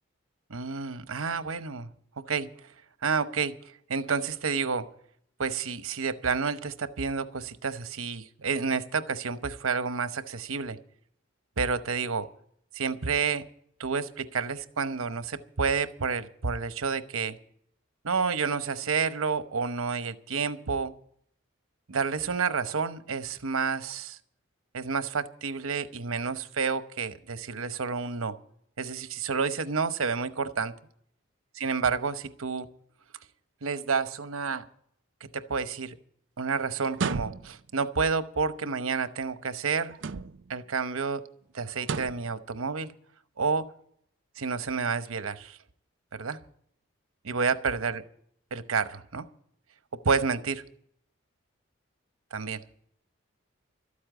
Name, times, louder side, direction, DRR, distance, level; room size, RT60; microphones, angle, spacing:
voice 1, 0.5-1.9 2.3-2.5 3.0-3.6 3.9-4.9 5.4-10.8 11.6-12.3 12.7-13.4 13.8-17.4 18.0-20.9 21.9-24.2 24.7-28.3 28.8-30.7 31.6-32.7 33.6-34.6 35.3-35.9 36.4-40.0 40.5-41.3 41.5-42.9 43.4-43.6 44.4-45.6 46.1-46.4 47.2-48.0 48.5-49.3 50.0-50.6 52.3-52.6, right 5 dB, 90° right, 12 dB, 0.9 m, -29 dB
sound 1, 36.9-37.7 39.9-40.6 41.8-42.3, right 5 dB, 65° right, 0.5 m, -33 dB
13.0 x 8.6 x 9.1 m, 0.66 s
head